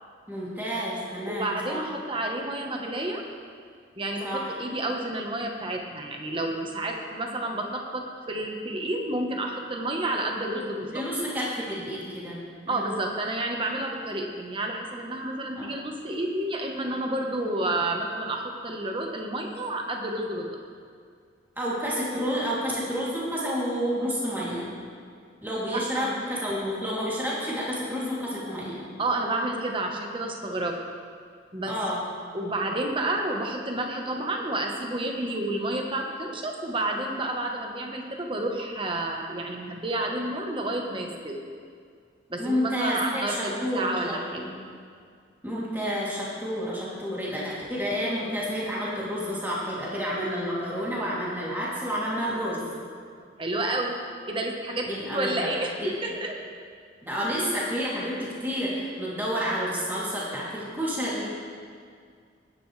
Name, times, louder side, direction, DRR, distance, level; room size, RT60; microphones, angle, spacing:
voice 1, 0.3-1.8 4.2-4.6 10.9-12.4 12.6-12.9 15.6-15.7 21.6-24.7 25.4-28.8 31.6-32.0 42.4-44.5 45.4-52.7 54.8-55.5 55.8-55.9 57.0-58.1 58.4-61.3, equal, 10° right, -7 dB, 2.9 m, -30 dB
voice 2, 1.3-3.2 4.0-11.0 12.7-20.6 25.7-26.1 29.0-30.8 31.5-31.8 32.3-41.4 42.3-44.4 53.4-54.0 54.2-56.4, right 1 dB, 25° right, 1 dB, 1.2 m, -30 dB
19.0 x 10.5 x 3.3 m, 2.1 s
head